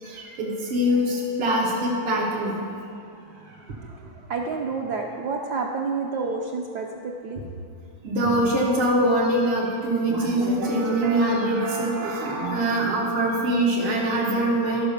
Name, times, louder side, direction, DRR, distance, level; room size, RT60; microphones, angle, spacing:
voice 1, 0.0-2.6 8.0-14.9, right 1 dB, 85° right, -6 dB, 2.2 m, -23 dB
voice 2, 3.0-7.4, right 4 dB, 70° right, 0 dB, 1.0 m, -30 dB
13.5 x 4.9 x 6.6 m, 2.5 s
omnidirectional pair, 2.3 m